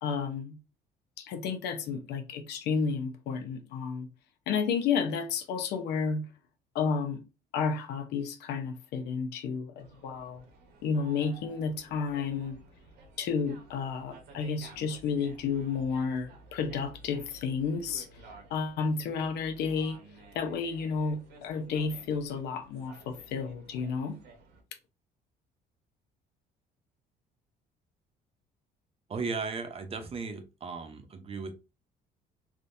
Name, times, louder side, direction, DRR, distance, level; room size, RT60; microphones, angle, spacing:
voice 1, 0.0-0.6 1.2-4.1 4.5-6.3 6.7-7.2 7.5-10.4 10.8-12.6 13.2-18.1 18.5-20.0 20.3-24.2, left 5 dB, 80° left, 0.7 m, -31 dB
sound 1, 9.8-24.6, right 2 dB, 75° right, 1.2 m, -53 dB
voice 2, 29.1-31.5, right 4 dB, 35° right, 0.8 m, -36 dB
3.5 x 2.8 x 2.6 m
cardioid pair, 110°, 17 cm